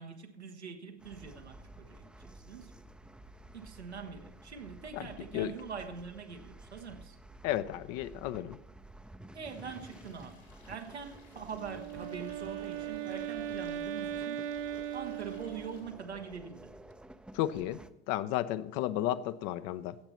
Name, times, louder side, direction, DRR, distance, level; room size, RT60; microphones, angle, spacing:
voice 1, 0.0-2.7 3.5-7.2 9.3-14.5 14.9-16.7, right 6 dB, 85° right, 1.4 m, -44 dB
sound 1, 1.0-17.9, right 1 dB, 5° right, 0.6 m, -52 dB
voice 2, 7.4-8.6 17.3-20.0, left 13 dB, 50° left, 0.7 m, -33 dB
Stream, 9.4-15.8, left 4 dB, 85° left, 4.0 m, -61 dB
Wind instrument woodwind instrument, 11.5-16.0, right 10 dB, 55° right, 0.7 m, -38 dB
16.5 x 8.0 x 4.3 m
figure-of-eight pair, 70°, 32 cm